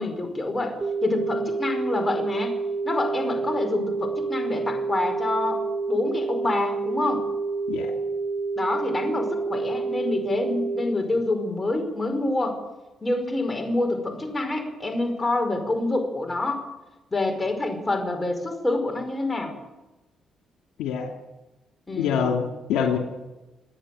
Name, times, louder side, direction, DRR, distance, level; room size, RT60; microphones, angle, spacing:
voice 1, 0.0-2.5 2.8-7.2 8.5-12.6 13.0-16.6 17.1-19.5 21.9-22.4, left 2 dB, 20° left, 5 dB, 5.2 m, -27 dB
sound 1, 0.8-10.8, right 4 dB, 30° right, 2.5 m, -28 dB
voice 2, 22.0-23.0, left 7 dB, 90° left, 3 dB, 2.9 m, -25 dB
26.5 x 10.5 x 9.3 m, 1.1 s
cardioid pair, 90°, 0 cm